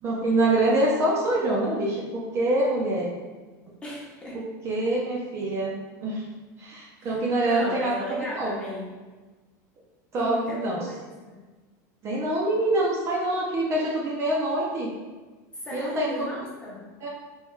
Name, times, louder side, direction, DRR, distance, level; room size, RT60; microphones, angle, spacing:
voice 1, 0.0-3.1 4.3-5.7 6.0-6.2 6.6-8.5 10.1-10.8 12.0-14.9 15.7-16.5 17.0-17.1, right 1 dB, 30° right, -4 dB, 0.5 m, -25 dB
voice 2, 3.8-4.4 7.0-8.9 10.1-11.0 11.3-11.4 15.6-16.9, equal, 10° left, -5 dB, 0.9 m, -36 dB
3.5 x 3.0 x 3.1 m, 1.3 s
supercardioid pair, 150°, 10 cm